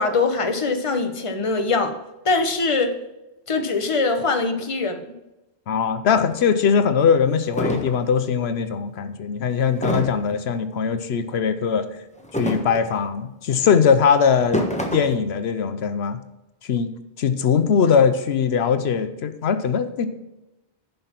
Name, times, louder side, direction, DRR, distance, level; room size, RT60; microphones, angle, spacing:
voice 1, 0.0-2.0 2.2-2.9 3.5-5.0, left 3 dB, 30° left, 6 dB, 1.1 m, -22 dB
voice 2, 5.7-11.8 12.4-14.6 14.9-16.2 16.6-20.1, left 6 dB, 85° left, 11 dB, 1.0 m, -21 dB
sound 1, 6.3-6.4 7.0-7.1 7.5-8.0 9.8-10.3 12.2-13.0 14.3-15.2, equal, 5° left, 1.2 m, -26 dB
10.5 x 5.5 x 5.8 m, 0.98 s
omnidirectional pair, 1.1 m